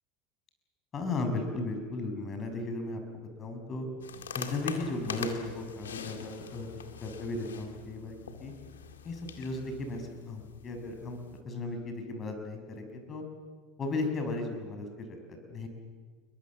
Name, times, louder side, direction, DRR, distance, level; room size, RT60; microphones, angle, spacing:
voice 1, 0.9-3.9 4.3-8.5 9.0-11.2 11.4-13.2 13.8-15.7, left 2 dB, 35° left, 5 dB, 6.3 m, -36 dB
sound 1, 4.0-11.4, left 7 dB, 85° left, 2.1 m, -44 dB
29.0 x 22.5 x 7.5 m, 1.5 s
hypercardioid pair, 80°, 0 cm